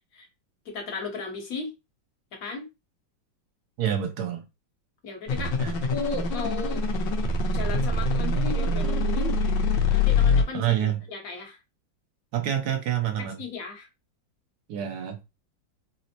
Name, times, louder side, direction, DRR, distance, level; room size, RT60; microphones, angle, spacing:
voice 1, 0.6-1.7 2.3-2.6 5.0-5.6 5.9-6.9 7.5-9.4 9.9-11.6 13.4-13.9, left 4 dB, 55° left, 1.3 m, -35 dB
voice 2, 3.8-4.4 5.6-5.7 10.5-11.0 12.3-13.4 14.7-15.2, right 10 dB, 70° right, 1.1 m, -27 dB
sound 1, 5.3-10.4, left 3 dB, 80° left, 1.4 m, -24 dB
4.3 x 2.0 x 2.7 m
omnidirectional pair, 2.0 m